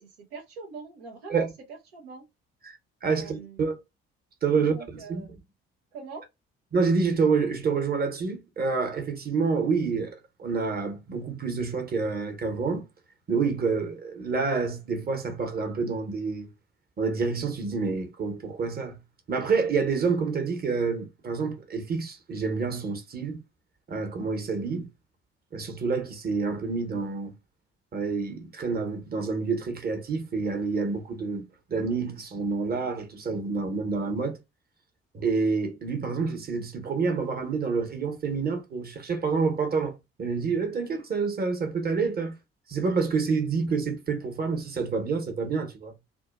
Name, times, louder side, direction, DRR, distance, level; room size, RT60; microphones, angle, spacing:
voice 1, 0.0-2.3 3.0-3.7 4.6-5.3 5.9-6.3, right 4 dB, 85° right, 0.6 m, -42 dB
voice 2, 2.6-3.7 4.4-5.4 6.7-12.9 13.3-16.5 17.0-19.0 19.3-23.4 23.9-24.9 25.5-27.4 27.9-34.4 35.1-42.3 42.7-45.9, right 4 dB, 30° right, 0.9 m, -28 dB
2.5 x 2.2 x 2.4 m
hypercardioid pair, 50°, 30 cm